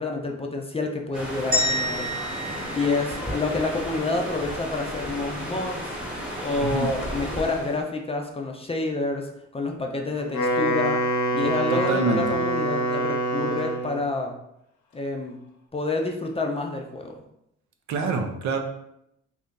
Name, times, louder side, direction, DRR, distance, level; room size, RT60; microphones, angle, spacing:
voice 1, 0.0-2.1 2.7-6.0 6.4-11.0 11.3-14.3 14.9-15.4 15.7-17.2, left 3 dB, 20° left, 2 dB, 0.4 m, -28 dB
sound 1, 1.1-7.8, equal, 5° right, 1.0 m, -33 dB
sound 2, 1.5-3.8, equal, 30° right, 1.0 m, -29 dB
Wind instrument woodwind instrument, 10.2-14.0, right 1 dB, 80° left, 0.8 m, -25 dB
voice 2, 11.7-12.3 17.9-18.6, right 4 dB, 70° right, 4 dB, 0.6 m, -26 dB
2.8 x 2.6 x 3.6 m, 0.80 s
cardioid pair, 90°, 30 cm